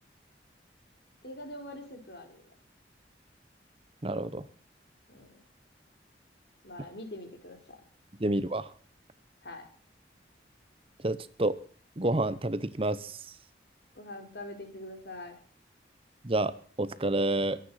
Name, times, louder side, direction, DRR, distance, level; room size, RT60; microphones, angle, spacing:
voice 1, 1.2-2.5 5.1-5.3 6.6-7.8 9.4-9.7 13.9-15.4, left 1 dB, 60° left, 4 dB, 4.8 m, -44 dB
voice 2, 4.0-4.4 8.2-8.7 11.0-11.6 12.0-13.2 16.2-17.6, right 2 dB, 30° right, 16 dB, 0.8 m, -29 dB
23.0 x 9.4 x 5.8 m, 0.44 s
head